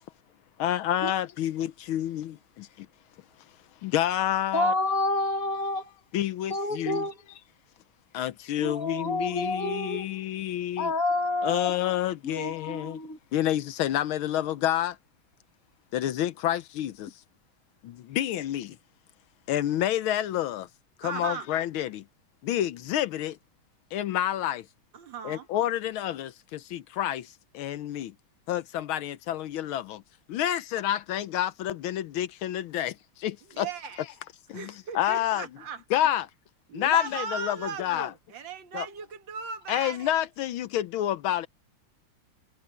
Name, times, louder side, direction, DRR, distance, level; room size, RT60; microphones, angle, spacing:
voice 1, 0.6-2.9 3.8-4.7 6.1-7.1 8.1-10.9 11.4-13.0 13.3-15.0 15.9-17.2 17.8-18.8 19.5-20.7 21.0-22.0 22.4-23.4 23.9-24.7 25.2-28.1 28.5-30.0 30.3-33.7 34.5-35.5 35.9-36.3 36.7-38.1 38.7-38.9 39.7-41.5, left 12 dB, 80° left, 1.5 m, -29 dB
voice 2, 4.5-5.9 6.5-7.1 8.6-10.1 10.8-11.8 12.2-13.2, left 2 dB, 45° left, 2.1 m, -29 dB
voice 3, 21.0-21.5 24.9-25.5 33.5-34.0 34.5-35.8 36.7-40.1, right 6 dB, 65° right, 2.0 m, -37 dB
omnidirectional pair, 2.3 m